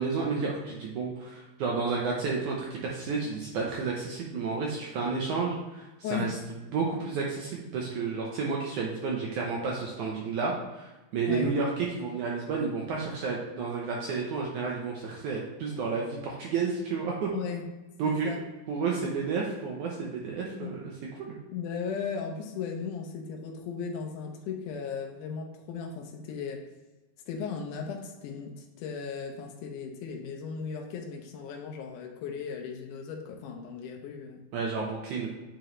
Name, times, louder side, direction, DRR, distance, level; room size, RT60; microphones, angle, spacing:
voice 1, 0.0-6.4 6.7-17.3 18.0-18.3 18.7-20.8 21.1-21.4 34.5-35.3, right 4 dB, 75° right, -2 dB, 1.9 m, -31 dB
voice 2, 6.0-6.4 11.3-11.5 17.3-17.7 18.0-18.4 20.6-20.8 21.5-26.6 27.3-34.4, left 6 dB, 75° left, 2 dB, 2.0 m, -36 dB
8.7 x 4.5 x 3.1 m, 1.1 s
omnidirectional pair, 4.3 m